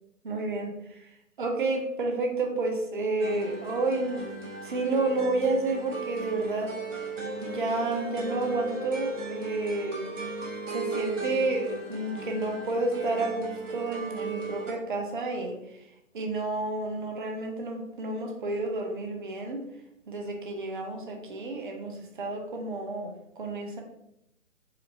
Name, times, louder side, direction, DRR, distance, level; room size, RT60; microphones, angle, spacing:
voice 1, 0.2-6.8 7.4-10.1 10.7-15.9 16.1-19.6 20.1-23.8, right 2 dB, 40° right, 2 dB, 0.6 m, -30 dB
sound 1, 3.2-14.7, right 3 dB, 65° right, 1.2 m, -37 dB
4.3 x 2.6 x 2.6 m, 0.81 s
figure-of-eight pair, 140°, 41 cm